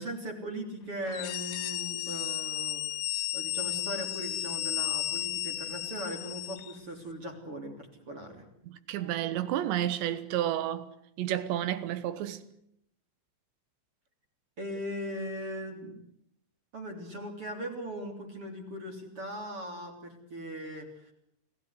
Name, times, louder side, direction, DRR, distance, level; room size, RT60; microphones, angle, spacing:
voice 1, 0.0-2.8 3.3-7.8 8.1-8.5 14.6-16.0 16.7-21.1, equal, 30° right, 3.7 m, -39 dB
sound 1, 1.1-6.8, left 14 dB, 80° left, 4.1 m, -34 dB
voice 2, 8.6-10.9 11.2-12.5, right 12 dB, 70° right, 3.2 m, -31 dB
29.0 x 17.5 x 8.3 m
omnidirectional pair, 5.9 m